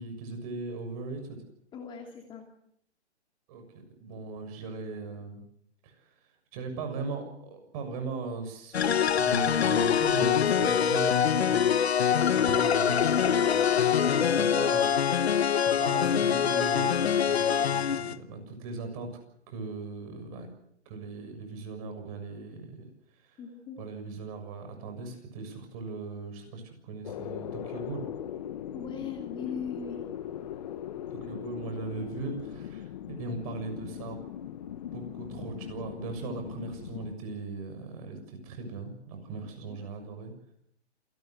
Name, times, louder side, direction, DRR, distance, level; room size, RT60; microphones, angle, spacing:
voice 1, 0.0-1.4 3.5-3.6 4.0-5.4 5.8-6.1 6.5-11.8 12.3-14.9 15.2-19.1 19.5-20.5 20.9-22.8 23.2-23.4 23.8-28.1 31.3-34.2 34.9-40.3, right 3 dB, 30° right, 6 dB, 6.9 m, -38 dB
voice 2, 1.7-2.5 10.6-10.8 23.4-23.8 28.7-30.0 31.2-31.3 39.7-39.8, left 6 dB, 15° left, 2 dB, 2.7 m, -39 dB
sound 1, 8.7-18.2, left 8 dB, 65° left, 1.3 m, -24 dB
sound 2, 27.0-37.2, left 10 dB, 35° left, 1.2 m, -39 dB
28.0 x 18.5 x 8.1 m, 0.73 s
hypercardioid pair, 150°, 34 cm